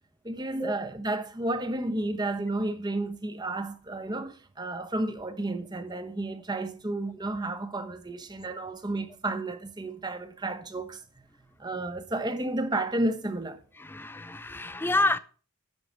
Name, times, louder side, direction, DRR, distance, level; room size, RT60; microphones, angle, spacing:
voice 1, 0.2-11.0 11.6-13.6, right 2 dB, 20° right, 1.0 m, -32 dB
voice 2, 13.8-15.2, left 2 dB, 10° left, 0.5 m, -28 dB
11.0 x 4.8 x 7.5 m
head